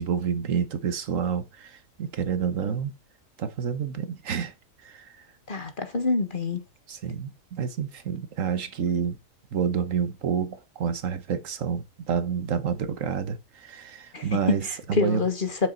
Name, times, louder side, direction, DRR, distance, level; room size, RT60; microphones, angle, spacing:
voice 1, 0.0-2.9 3.4-4.5 4.8-5.1 6.9-9.2 9.5-15.2, right 7 dB, 75° right, 1.4 m, -29 dB
voice 2, 5.5-6.6 14.1-15.7, left 4 dB, 40° left, 1.5 m, -26 dB
8.6 x 6.5 x 4.0 m
omnidirectional pair, 1.4 m